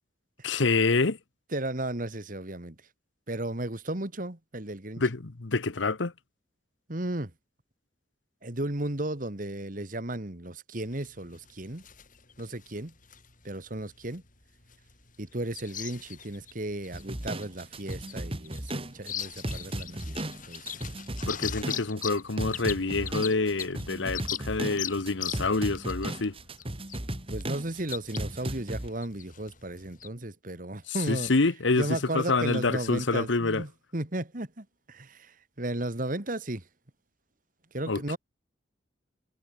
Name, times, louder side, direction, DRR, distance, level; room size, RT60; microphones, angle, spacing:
voice 1, 0.4-1.2 5.0-6.1 21.2-26.4 30.9-33.6 37.9-38.2, left 3 dB, 90° left, 1.1 m, -27 dB
voice 2, 1.5-2.8 3.3-5.0 6.9-7.3 8.4-11.8 12.4-12.9 13.4-14.2 15.2-21.0 27.3-31.3 31.8-36.6 37.7-38.2, right 1 dB, 45° right, 2.1 m, -35 dB
sound 1, 10.8-30.1, left 9 dB, 45° left, 7.0 m, -41 dB
sound 2, 16.9-28.9, right 1 dB, 30° right, 3.2 m, -36 dB
head